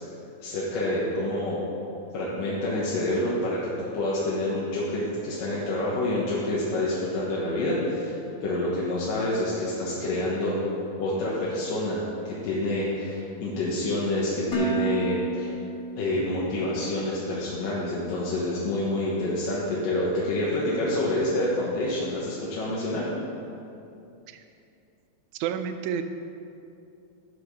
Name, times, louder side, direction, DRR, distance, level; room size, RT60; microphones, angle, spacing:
voice 1, 0.4-1.6 2.1-10.6 11.0-15.5 16.0-23.0, left 1 dB, 80° left, -7 dB, 3.0 m, -27 dB
Dishes pots and pans, 14.5-16.6, right 3 dB, 50° left, 1.2 m, -30 dB
voice 2, 25.3-26.0, right 8 dB, 85° right, 8 dB, 1.7 m, -30 dB
11.5 x 5.8 x 6.6 m, 2.7 s
omnidirectional pair, 3.9 m